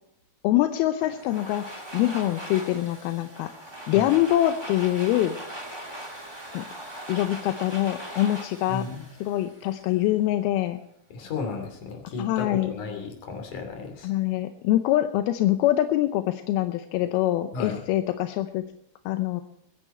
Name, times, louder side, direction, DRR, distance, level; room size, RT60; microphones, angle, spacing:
voice 1, 0.4-3.5 3.9-5.4 6.5-6.6 7.1-8.9 9.2-10.8 12.2-12.7 14.0-18.7 19.1-19.4, left 14 dB, 85° left, 9 dB, 2.6 m, -24 dB
Domestic sounds home sounds, 1.0-9.9, right 1 dB, 15° right, 0.9 m, -40 dB
voice 2, 8.7-9.0 11.1-14.1 17.5-17.8, left 4 dB, 55° left, 4 dB, 4.2 m, -34 dB
23.5 x 10.0 x 4.5 m, 0.78 s
omnidirectional pair, 4.4 m